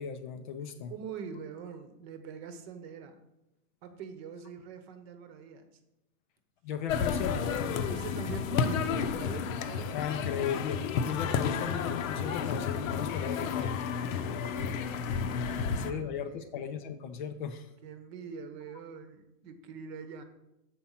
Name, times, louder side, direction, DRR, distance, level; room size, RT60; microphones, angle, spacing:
voice 1, 0.0-0.9 6.6-7.6 9.9-13.8 15.5-17.7, left 7 dB, 35° left, 8 dB, 0.4 m, -36 dB
voice 2, 0.9-3.2 3.8-5.6 7.9-9.9 14.4-14.9 15.5-16.5 17.8-20.2, right 6 dB, 45° right, 9 dB, 0.9 m, -44 dB
sound 1, 6.9-15.9, left 6 dB, 60° left, 0.8 m, -31 dB
7.3 x 4.4 x 5.6 m, 0.90 s
supercardioid pair, 145°, 45 cm